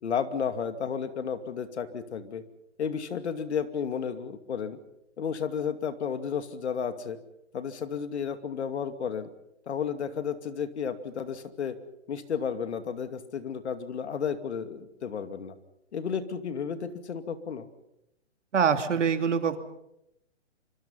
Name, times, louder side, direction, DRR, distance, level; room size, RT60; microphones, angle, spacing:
voice 1, 0.0-2.4 2.8-4.8 5.2-7.2 7.5-9.3 9.7-11.8 12.1-15.5 15.9-17.7, left 7 dB, 65° left, 9 dB, 2.6 m, -32 dB
voice 2, 18.5-19.6, right 7 dB, 75° right, 7 dB, 2.9 m, -24 dB
26.0 x 25.5 x 5.7 m, 0.83 s
hypercardioid pair, 155°, 36 cm